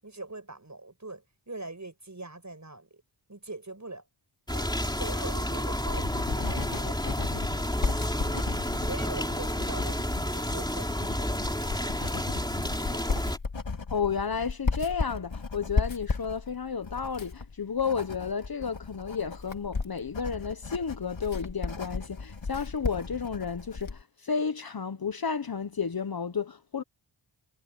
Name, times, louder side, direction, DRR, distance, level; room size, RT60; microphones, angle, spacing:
voice 1, 0.0-3.0 3.3-4.1 4.5-4.7 5.0-8.4 8.8-10.9 11.2-12.2 12.8-13.2, right 2 dB, 35° right, 7.7 m, -43 dB
sound 1, 4.5-13.4, left 1 dB, 10° left, 3.8 m, -30 dB
Writing, 5.4-24.0, left 4 dB, 70° left, 3.6 m, -35 dB
voice 2, 13.9-26.8, left 6 dB, 50° left, 1.0 m, -32 dB
cardioid pair, 40°, 48 cm